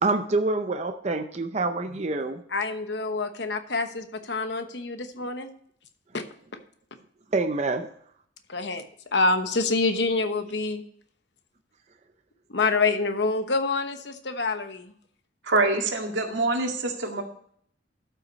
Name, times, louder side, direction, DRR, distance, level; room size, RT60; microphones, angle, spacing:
voice 1, 0.0-2.4 7.3-7.9, right 3 dB, 35° right, 6 dB, 0.6 m, -26 dB
voice 2, 2.5-5.5 6.1-6.2 8.5-8.8 9.1-10.8 12.5-14.9, left 3 dB, 65° left, 8 dB, 1.0 m, -26 dB
voice 3, 15.5-17.2, right 2 dB, 80° right, 2 dB, 2.0 m, -25 dB
12.5 x 5.9 x 4.1 m, 0.62 s
head